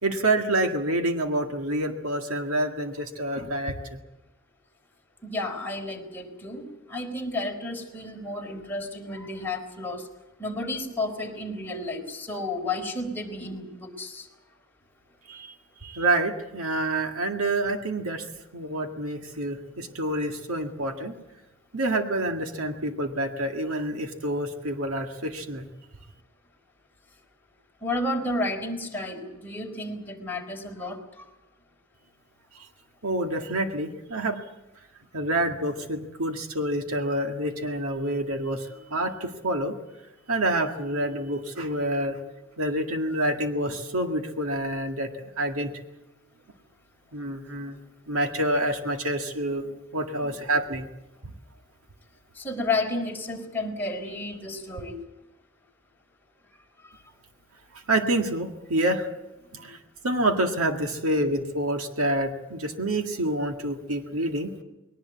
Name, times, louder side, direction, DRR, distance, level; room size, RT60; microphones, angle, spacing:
voice 1, 0.0-4.0 15.3-15.5 15.8-18.3 18.5-21.1 21.7-25.7 32.6-32.7 33.0-34.4 35.1-39.8 40.3-42.2 42.6-45.7 47.1-47.8 48.1-49.7 49.9-50.9 51.2-51.3 57.9-59.1 59.5-59.8 60.0-64.5, right 1 dB, 80° right, 5 dB, 2.0 m, -27 dB
voice 2, 5.2-6.6 6.9-10.0 10.4-14.2 27.8-31.0 52.4-54.9, left 2 dB, 10° left, 0 dB, 4.2 m, -31 dB
21.5 x 19.0 x 8.3 m, 1.0 s
head